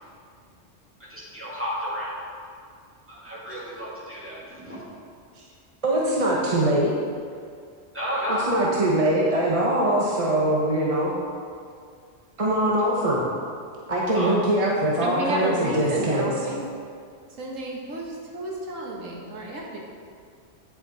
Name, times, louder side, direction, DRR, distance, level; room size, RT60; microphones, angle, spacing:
voice 1, 1.1-2.2 3.1-4.8 7.9-8.5 14.1-14.3, equal, 10° right, -8 dB, 2.2 m, -31 dB
voice 2, 5.8-6.9 8.3-11.2 12.4-13.3 13.9-16.3, right 1 dB, 30° right, -4 dB, 0.9 m, -22 dB
voice 3, 15.0-16.6 17.4-19.8, right 1 dB, 85° right, -2 dB, 1.6 m, -30 dB
9.5 x 6.8 x 3.9 m, 2.2 s
omnidirectional pair, 1.3 m